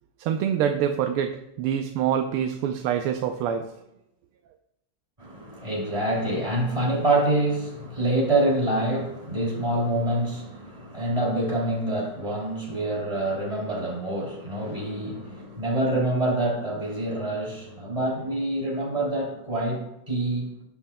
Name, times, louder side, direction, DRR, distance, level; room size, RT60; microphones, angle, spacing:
voice 1, 0.2-3.7, right 9 dB, 90° right, 5 dB, 1.5 m, -25 dB
voice 2, 5.2-20.5, right 1 dB, 15° right, -4 dB, 2.8 m, -26 dB
17.0 x 5.7 x 2.2 m, 0.84 s
omnidirectional pair, 2.4 m